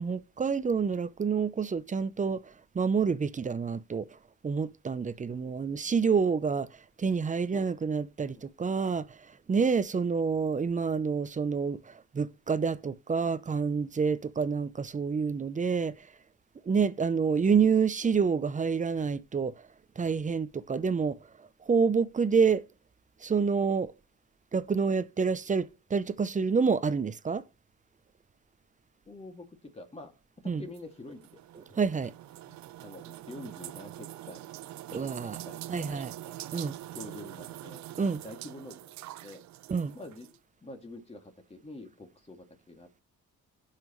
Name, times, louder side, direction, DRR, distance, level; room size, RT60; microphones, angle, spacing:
voice 1, 0.0-4.1 4.4-6.7 7.0-9.2 9.5-16.0 16.7-19.6 20.0-21.2 21.6-22.6 23.2-23.9 24.5-27.4 30.5-30.6 31.8-32.1 34.9-35.4 35.7-36.1 36.5-36.8 38.0-38.2 39.7-39.9, right 5 dB, 25° right, 0.6 m, -28 dB
voice 2, 5.3-6.1 7.5-7.7 8.3-8.4 29.1-30.1 30.4-31.3 32.5-34.5 34.9-36.4 36.9-38.9 39.2-39.4 39.9-43.0, left 2 dB, 20° left, 2.3 m, -47 dB
sound 1, 30.7-40.4, right 14 dB, 70° right, 0.5 m, -44 dB
17.0 x 5.8 x 3.1 m
cardioid pair, 90°, 30 cm